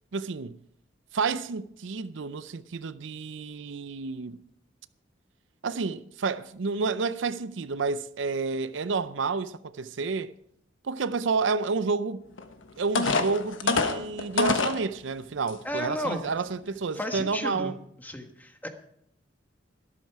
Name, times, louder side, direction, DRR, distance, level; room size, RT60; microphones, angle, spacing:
voice 1, 0.1-0.6 1.1-4.4 5.6-10.3 10.8-12.2 12.8-17.8, right 4 dB, 70° right, 0.5 m, -30 dB
sound 1, 12.4-12.5 13.0-14.8 15.5-15.6 16.1-16.3, left 3 dB, 85° left, 1.2 m, -25 dB
voice 2, 15.6-16.2 16.9-18.7, left 1 dB, 10° left, 1.4 m, -33 dB
13.0 x 12.5 x 4.7 m
head